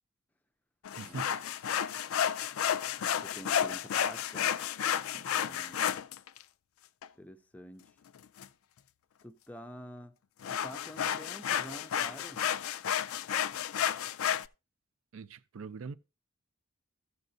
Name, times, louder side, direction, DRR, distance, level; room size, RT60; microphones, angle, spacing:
sound 1, 0.8-6.4 7.0-7.1 8.2-8.5 10.4-14.5, left 9 dB, 85° left, 0.4 m, -32 dB
voice 1, 1.0-1.3 5.1-5.3 15.1-15.9, right 5 dB, 80° right, 0.4 m, -42 dB
voice 2, 3.0-4.6 5.3-5.9 7.1-7.9 9.2-10.1 10.5-12.4, equal, 5° left, 0.4 m, -48 dB
14.0 x 6.9 x 2.6 m
head